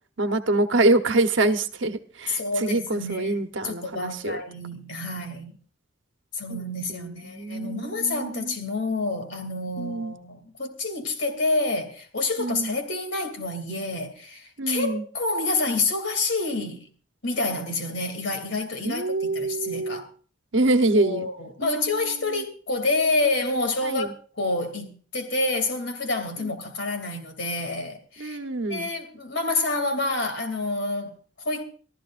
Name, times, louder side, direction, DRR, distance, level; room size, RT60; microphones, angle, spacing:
voice 1, 0.2-4.4 6.5-6.6 6.9-8.5 9.8-10.1 12.4-12.7 14.6-15.0 18.8-20.0 20.5-21.3 21.6-22.4 23.8-24.1 26.4-26.5 28.2-28.9, right 2 dB, 70° right, 1.1 m, -25 dB
voice 2, 2.3-3.4 3.6-5.5 6.3-16.9 17.2-20.1 20.9-28.4 28.7-31.6, left 2 dB, 70° left, 2.8 m, -28 dB
24.5 x 14.0 x 2.5 m
head